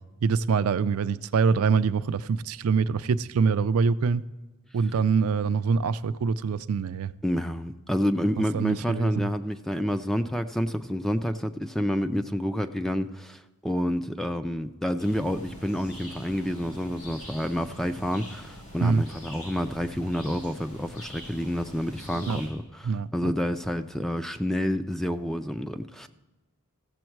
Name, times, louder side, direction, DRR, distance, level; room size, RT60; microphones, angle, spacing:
voice 1, 0.2-4.2 4.7-7.1 8.5-9.3 18.8-19.0 22.3-22.4 22.8-23.3, right 5 dB, 70° right, 0.4 m, -24 dB
voice 2, 7.2-26.1, equal, ahead, 0.3 m, -29 dB
sound 1, 15.0-22.5, equal, 80° left, 4.3 m, -44 dB
15.5 x 7.1 x 4.5 m
head